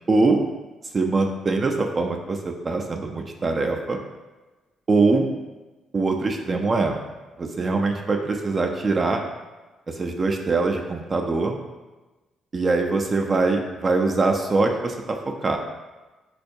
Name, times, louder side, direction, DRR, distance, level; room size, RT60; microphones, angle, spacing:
voice 1, 0.1-0.4 0.9-4.0 4.9-5.3 5.9-7.0 7.4-9.2 9.9-11.6 12.5-15.6, right 3 dB, 35° right, 2 dB, 0.3 m, -23 dB
4.2 x 2.2 x 2.6 m, 1.2 s
cardioid pair, 90°, 0 cm